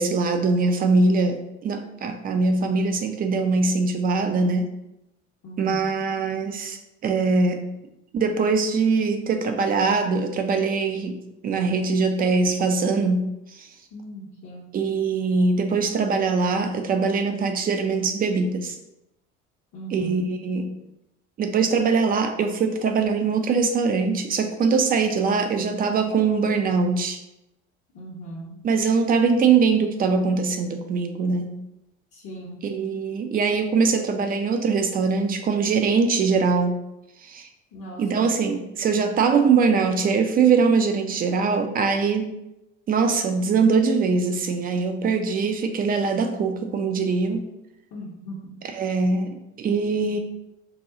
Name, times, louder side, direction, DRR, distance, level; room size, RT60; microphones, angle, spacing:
voice 1, 0.0-4.7 5.6-7.7 8.1-11.2 11.4-13.3 13.5-13.7 14.7-18.7 19.9-20.6 21.4-27.2 28.6-31.6 32.7-36.8 37.2-37.5 38.0-42.3 42.9-47.4 48.8-50.2, right 4 dB, 25° right, 6 dB, 0.4 m, -22 dB
voice 2, 5.4-6.0 13.9-14.8 19.7-20.3 27.9-28.6 32.1-32.6 37.7-38.3 47.9-48.6, equal, 40° left, -3 dB, 0.7 m, -39 dB
2.7 x 2.2 x 3.8 m, 0.88 s
figure-of-eight pair, 60°, 36 cm